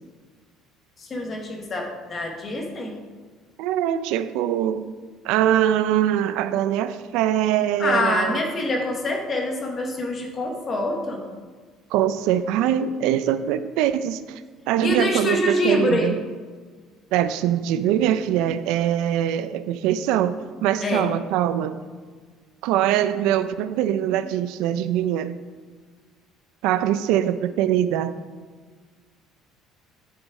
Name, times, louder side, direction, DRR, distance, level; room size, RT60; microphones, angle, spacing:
voice 1, 1.0-2.9 7.8-11.2 14.8-16.1 20.8-21.1, left 1 dB, 25° left, 2 dB, 1.3 m, -25 dB
voice 2, 3.6-4.9 5.2-8.4 11.9-14.4 14.7-16.2 17.1-21.8 22.6-25.4 26.6-28.1, right 11 dB, 75° right, 12 dB, 0.4 m, -23 dB
9.3 x 6.3 x 4.9 m, 1.5 s
cardioid pair, 175°, 0 cm